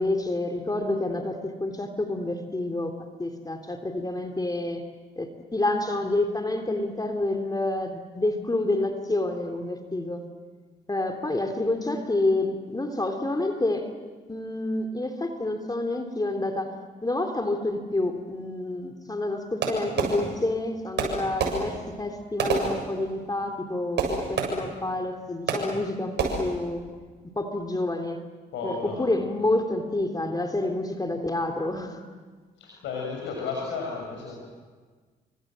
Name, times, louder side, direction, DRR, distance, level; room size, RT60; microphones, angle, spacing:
voice 1, 0.0-4.8 5.2-10.3 10.9-13.9 14.3-16.7 17.0-26.9 27.3-28.2 28.6-32.0, left 2 dB, 20° left, 5 dB, 3.3 m, -28 dB
Fireworks, 19.6-20.6 21.0-23.4 24.0-24.9 25.5-25.9 26.2-26.7, right 4 dB, 65° right, 7.6 m, -29 dB
voice 2, 28.5-29.0 32.6-34.3, left 4 dB, 70° left, -2 dB, 6.8 m, -33 dB
30.0 x 25.5 x 7.7 m, 1.4 s
hypercardioid pair, 45°, 20 cm